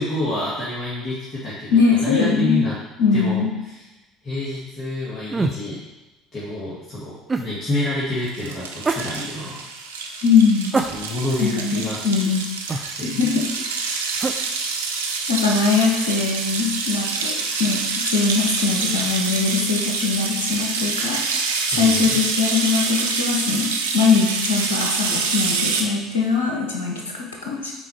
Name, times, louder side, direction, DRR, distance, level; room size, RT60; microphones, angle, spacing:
voice 1, 0.0-2.8 3.1-3.5 3.8-3.9 4.2-5.8 6.3-9.6 10.9-12.2 13.0-13.2 13.8-14.0 21.7-22.2, left 1 dB, 35° left, -9 dB, 2.1 m, -28 dB
voice 2, 1.7-2.6 3.0-3.5 10.2-10.7 11.4-12.5 13.0-13.4 15.3-21.2 21.7-23.7 23.9-27.7, left 5 dB, 75° left, -1 dB, 1.0 m, -21 dB
sound 1, 5.3-5.6 7.3-7.5 8.8-9.1 10.7-11.3 12.7-12.9 14.2-14.4, right 3 dB, 20° right, 0.5 m, -24 dB
sound 2, 8.2-25.8, right 4 dB, 75° right, 0.5 m, -26 dB
6.1 x 4.2 x 4.5 m, 1.0 s
figure-of-eight pair, 60°, 0 cm